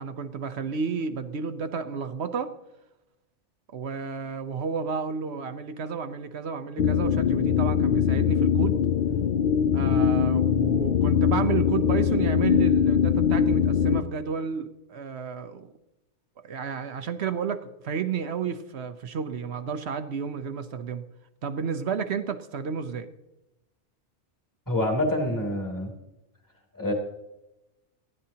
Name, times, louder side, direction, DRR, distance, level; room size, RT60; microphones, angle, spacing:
voice 1, 0.0-2.5 3.7-8.8 9.7-15.7 16.4-21.0 21.4-23.1, right 6 dB, 65° right, 10 dB, 1.0 m, -31 dB
sound 1, 6.8-14.0, left 8 dB, 60° left, 0.6 m, -22 dB
voice 2, 24.7-25.9 26.7-26.9, left 1 dB, 15° left, 1 dB, 2.9 m, -26 dB
19.5 x 14.5 x 2.8 m, 0.96 s
omnidirectional pair, 1.2 m